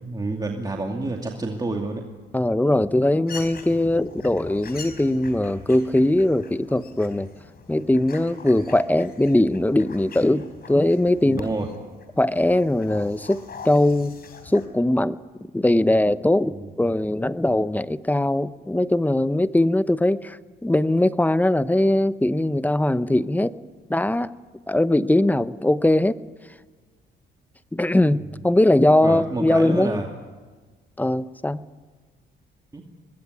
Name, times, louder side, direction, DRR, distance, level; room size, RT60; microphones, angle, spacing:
voice 1, 0.0-2.1 11.2-11.7 16.4-16.7 28.0-28.2 29.0-30.1 32.7-32.8, right 2 dB, 20° right, 1 dB, 2.5 m, -29 dB
voice 2, 2.3-7.3 7.7-11.5 12.2-14.1 14.5-15.2 15.5-23.5 23.9-24.3 24.7-26.2 27.7-30.0 31.0-31.7, left 1 dB, 10° left, 14 dB, 0.8 m, -21 dB
sound 1, 3.3-14.7, left 4 dB, 50° left, 4.3 m, -43 dB
23.0 x 21.0 x 9.7 m, 1.4 s
cardioid pair, 90°, 20 cm